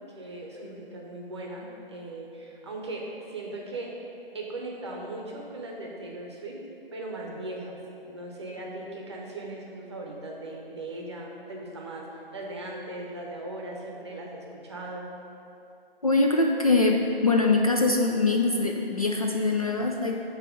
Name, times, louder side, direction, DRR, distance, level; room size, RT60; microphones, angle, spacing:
voice 1, 0.1-3.9 4.3-6.6 6.9-7.8 8.1-12.1 12.3-15.1, right 2 dB, 30° right, -2 dB, 0.8 m, -38 dB
voice 2, 16.0-20.2, left 3 dB, 40° left, 1 dB, 0.4 m, -23 dB
8.6 x 2.9 x 6.2 m, 2.8 s
figure-of-eight pair, 160°, 30 cm